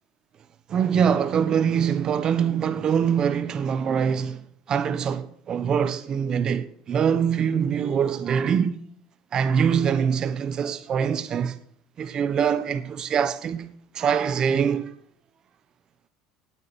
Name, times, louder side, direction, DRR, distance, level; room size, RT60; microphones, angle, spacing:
voice 1, 0.7-4.4 4.7-8.8 9.3-11.6 12.0-14.9, right 7 dB, 35° right, 1.2 m, -24 dB
18.0 x 9.3 x 7.0 m
cardioid pair, 140°, 2 cm